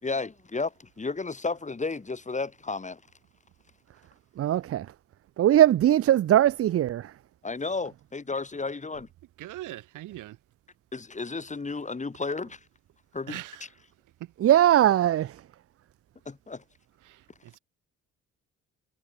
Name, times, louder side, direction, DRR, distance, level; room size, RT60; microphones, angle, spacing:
voice 1, 0.0-3.0 7.4-9.1 10.9-12.6 13.1-13.4 16.3-16.6, left 3 dB, 25° left, 2.8 m, -33 dB
voice 2, 4.4-4.9 5.4-7.1 14.4-15.3, right 12 dB, 50° right, 0.5 m, -20 dB
voice 3, 9.4-10.4 13.3-13.7 14.2-14.3 17.0-17.6, right 15 dB, 85° right, 5.2 m, -41 dB
cardioid pair, 90°, 30 cm